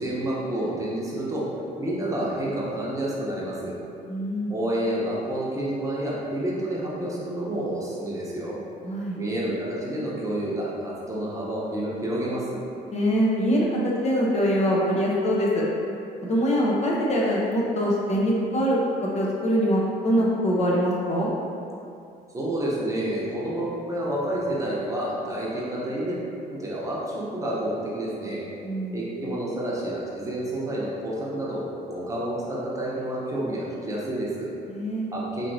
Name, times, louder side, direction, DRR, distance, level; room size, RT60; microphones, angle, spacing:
voice 1, 0.0-1.4 1.8-3.7 4.5-8.6 9.1-12.6 22.3-26.2 26.5-28.4 28.9-31.6 31.9-34.5 35.1-35.5, right 1 dB, 20° right, -6 dB, 0.8 m, -29 dB
voice 2, 4.1-4.5 8.8-9.2 12.9-15.6 16.2-21.3 28.6-29.0 34.7-35.1, equal, 40° left, -4 dB, 0.6 m, -23 dB
4.4 x 2.8 x 2.7 m, 2.6 s
cardioid pair, 110°, 17 cm